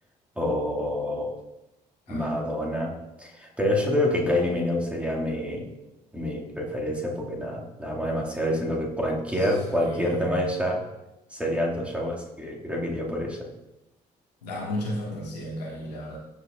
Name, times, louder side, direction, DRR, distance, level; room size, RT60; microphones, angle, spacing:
voice 1, 0.4-1.4 2.1-2.9 3.2-5.6 6.1-10.8 11.3-13.4, left 1 dB, 5° right, -3 dB, 2.0 m, -27 dB
voice 2, 2.1-2.5 9.3-10.4 14.4-16.2, equal, 80° left, -4 dB, 1.6 m, -34 dB
13.0 x 4.9 x 2.4 m, 0.94 s
figure-of-eight pair, 45°, 21 cm